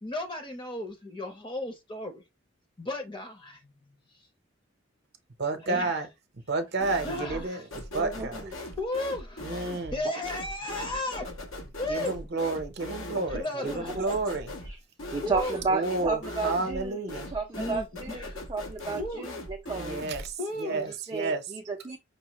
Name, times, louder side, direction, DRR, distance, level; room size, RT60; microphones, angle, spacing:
voice 1, 0.0-2.2 2.8-4.0 5.6-5.9 7.0-7.7 8.8-9.4 9.9-11.3 11.8-12.3 13.3-14.1 15.2-15.6 17.5-18.5 18.9-19.3 20.4-20.9, left 2 dB, 25° left, 0.8 m, -35 dB
voice 2, 5.4-6.1 6.5-7.6 7.9-8.4 9.4-10.0 11.9-14.5 15.7-17.3 18.8-18.9 19.8-20.3 20.6-21.4, right 3 dB, 55° right, 0.7 m, -31 dB
sound 1, 6.8-7.5 7.7-20.3, left 1 dB, 85° left, 1.2 m, -40 dB
voice 3, 7.9-8.5 13.1-13.2 13.6-14.2 14.6-14.8 15.1-17.0 17.3-20.0 20.7-22.0, right 4 dB, 20° right, 0.4 m, -33 dB
5.4 x 2.0 x 3.0 m
head